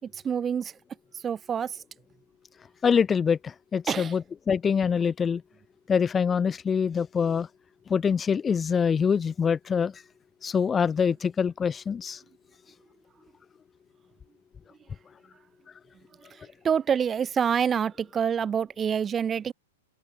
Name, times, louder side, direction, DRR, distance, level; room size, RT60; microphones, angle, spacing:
voice 1, 0.0-0.8 1.1-1.8 3.9-4.2 16.3-19.5, right 7 dB, 20° right, 4.1 m, -27 dB
voice 2, 2.8-5.4 5.9-7.5 7.9-10.0 10.4-12.2, left 6 dB, 15° left, 2.7 m, -25 dB
open air
hypercardioid pair, 140°, 0 cm